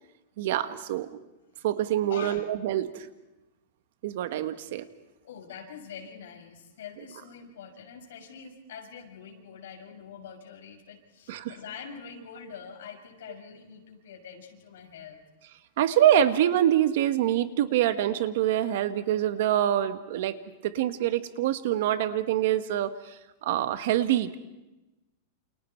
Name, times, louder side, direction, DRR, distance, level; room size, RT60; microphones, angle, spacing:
voice 1, 0.4-1.2 1.6-3.1 4.0-4.8 11.3-11.5 15.8-23.1 23.4-24.4, right 11 dB, 50° right, 12 dB, 1.4 m, -25 dB
voice 2, 2.1-2.4 5.2-15.2, left 7 dB, 75° left, 2 dB, 6.5 m, -44 dB
29.5 x 28.0 x 4.6 m, 1.0 s
supercardioid pair, 175°, 0 cm